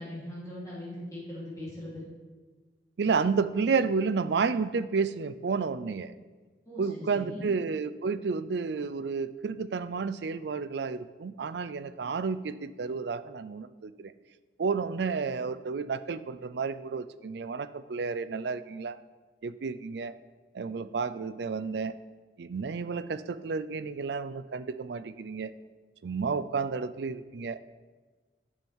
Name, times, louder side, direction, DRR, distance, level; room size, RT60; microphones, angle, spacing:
voice 1, 0.0-2.0 6.7-7.5, left 1 dB, 20° left, -8 dB, 3.6 m, -40 dB
voice 2, 3.0-6.1 6.8-14.1 14.6-19.0 19.4-20.1 20.5-22.0 22.4-25.5 26.0-27.6, right 5 dB, 70° right, 13 dB, 0.4 m, -31 dB
11.0 x 7.1 x 4.6 m, 1.3 s
head